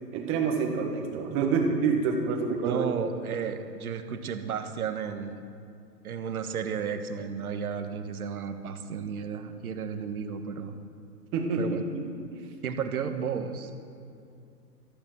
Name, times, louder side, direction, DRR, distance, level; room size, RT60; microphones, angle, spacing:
voice 1, 0.1-2.8 11.3-12.0 12.3-12.4, right 5 dB, 25° right, 3 dB, 1.8 m, -27 dB
voice 2, 2.6-5.4 6.0-10.8 11.6-11.8 12.6-13.8, right 6 dB, 60° right, 8 dB, 1.4 m, -33 dB
14.0 x 12.5 x 6.1 m, 2.5 s
hypercardioid pair, 135°, 50 cm